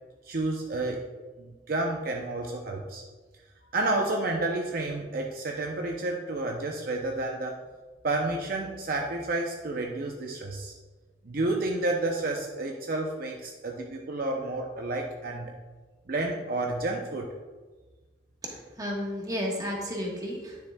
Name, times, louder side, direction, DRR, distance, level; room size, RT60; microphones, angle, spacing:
voice 1, 0.3-1.0 1.4-3.0 3.7-7.5 8.0-10.7 11.2-15.5 16.1-17.3, right 2 dB, 55° right, 1 dB, 0.6 m, -30 dB
voice 2, 18.4-20.6, equal, 20° right, -2 dB, 1.3 m, -33 dB
9.7 x 6.9 x 2.3 m, 1.3 s
head